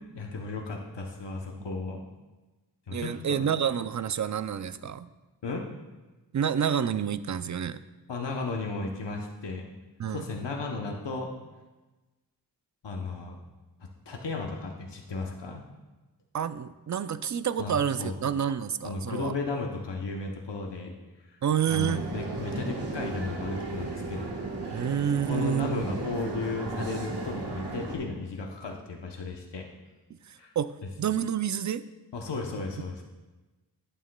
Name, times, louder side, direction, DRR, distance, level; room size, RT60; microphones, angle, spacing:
voice 1, 0.0-2.0 2.9-3.6 5.4-5.6 8.1-9.7 10.1-11.3 12.8-13.4 13.8-15.6 17.6-18.1 18.8-20.9 21.3-21.4 21.7-24.3 24.7-24.9 25.3-29.7 30.4-30.5 30.8-30.9 32.1-33.0, left 3 dB, 90° left, 1 dB, 0.9 m, -35 dB
voice 2, 2.9-5.1 6.3-7.8 10.0-10.2 16.3-19.3 21.4-22.0 24.7-25.9 30.3-30.7 31.0-31.8, right 8 dB, 45° right, 14 dB, 0.4 m, -28 dB
sound 1, 21.8-28.0, right 3 dB, 75° right, 1.4 m, -35 dB
11.0 x 9.0 x 2.2 m, 1.2 s
wide cardioid pair, 50°, 41 cm